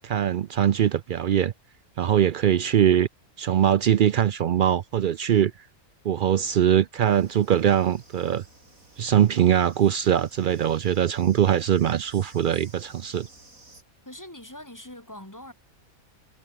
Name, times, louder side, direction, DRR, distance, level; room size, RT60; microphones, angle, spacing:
voice 1, 0.0-1.5 2.0-3.1 3.4-5.5 6.1-8.4 9.0-13.3, right 10 dB, 85° right, 0.4 m, -22 dB
sound 1, 7.0-13.8, right 2 dB, 70° right, 7.0 m, -53 dB
voice 2, 14.1-15.5, left 1 dB, 10° left, 2.6 m, -42 dB
omnidirectional pair, 1.5 m